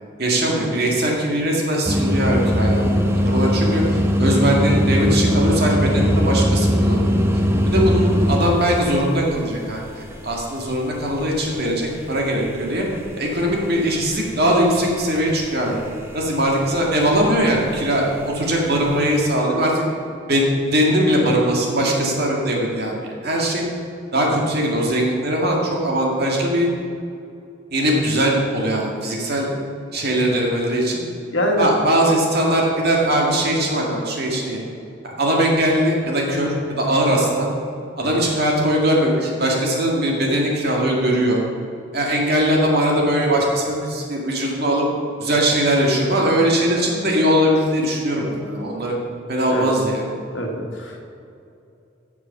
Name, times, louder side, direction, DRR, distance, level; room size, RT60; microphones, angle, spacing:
voice 1, 0.2-7.1 7.7-12.8 13.2-15.8 16.1-19.8 20.3-23.0 23.2-23.6 24.1-26.7 27.7-29.5 29.9-31.0 31.6-34.6 35.0-37.5 38.0-41.4 41.9-44.9 45.2-49.0 49.3-50.1, right 1 dB, 55° right, -1 dB, 1.9 m, -20 dB
sound 1, 1.9-12.1 12.3-19.2, equal, 15° right, 0.8 m, -21 dB
voice 2, 31.3-31.7 49.5-49.7 50.3-51.1, left 1 dB, 90° left, 0 dB, 1.7 m, -23 dB
8.6 x 7.1 x 6.9 m, 2.6 s
head